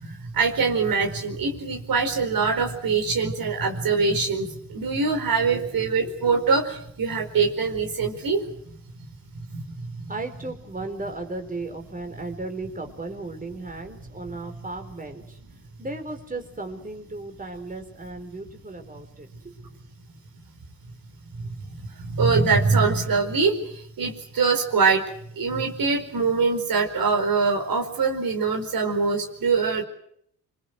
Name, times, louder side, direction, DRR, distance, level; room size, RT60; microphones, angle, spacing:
voice 1, 0.0-8.4 9.5-9.7 10.0-10.1 22.0-23.6 24.0-25.0 25.4-29.8, right 4 dB, 60° right, 5 dB, 4.8 m, -23 dB
voice 2, 5.4-6.5 10.1-15.4 15.8-19.7 26.3-26.5, right 2 dB, 20° right, 5 dB, 4.6 m, -36 dB
26.0 x 21.5 x 7.9 m, 0.70 s
supercardioid pair, 60°, 40 cm